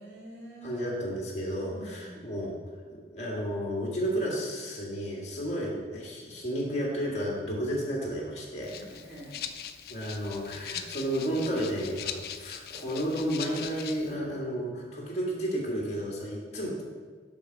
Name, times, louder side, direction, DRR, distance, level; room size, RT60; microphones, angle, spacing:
voice 1, 0.0-0.8 1.7-2.3 8.8-9.4, right 1 dB, 80° right, -5 dB, 2.0 m, -46 dB
voice 2, 0.6-2.6 2.9-8.8 9.9-16.8, equal, 35° left, -2 dB, 1.8 m, -32 dB
Rattle (instrument), 8.6-14.2, left 9 dB, 55° left, 0.4 m, -41 dB
6.9 x 6.1 x 4.6 m, 1.5 s
head